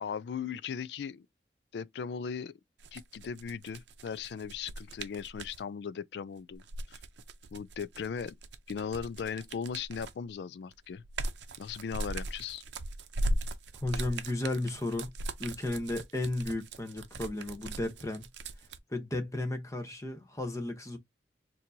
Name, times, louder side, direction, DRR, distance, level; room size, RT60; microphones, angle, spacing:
voice 1, 0.0-1.3 1.7-2.5 2.9-6.6 6.9-7.0 7.5-8.4 8.7-11.0 11.6-12.6, left 6 dB, 70° left, 0.3 m, -38 dB
sound 1, 2.8-5.6 6.5-10.3 10.7-18.8, right 1 dB, 90° right, 0.6 m, -38 dB
voice 2, 13.8-15.1 15.4-18.2 18.9-21.0, left 2 dB, 20° left, 0.8 m, -34 dB
4.3 x 2.7 x 2.6 m
head